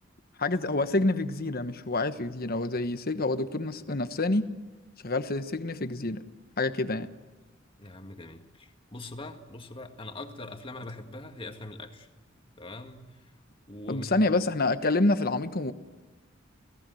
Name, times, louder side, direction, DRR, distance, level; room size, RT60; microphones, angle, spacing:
voice 1, 0.4-4.5 5.0-6.2 6.6-7.1 13.9-15.7, left 2 dB, 50° left, 10 dB, 1.2 m, -27 dB
voice 2, 7.8-12.1 12.6-13.0 13.7-14.3, left 2 dB, 25° left, 6 dB, 1.8 m, -42 dB
29.5 x 17.5 x 7.8 m, 1.2 s
head